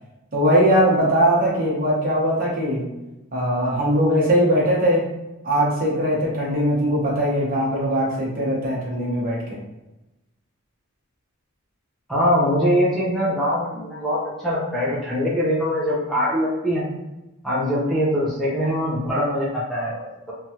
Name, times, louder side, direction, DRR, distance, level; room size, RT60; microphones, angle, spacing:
voice 1, 0.3-2.9 3.3-5.0 5.4-9.6, equal, 40° right, -6 dB, 1.0 m, -20 dB
voice 2, 12.1-17.0 17.4-20.3, equal, ahead, -7 dB, 0.5 m, -23 dB
3.1 x 2.3 x 2.8 m, 1.0 s
head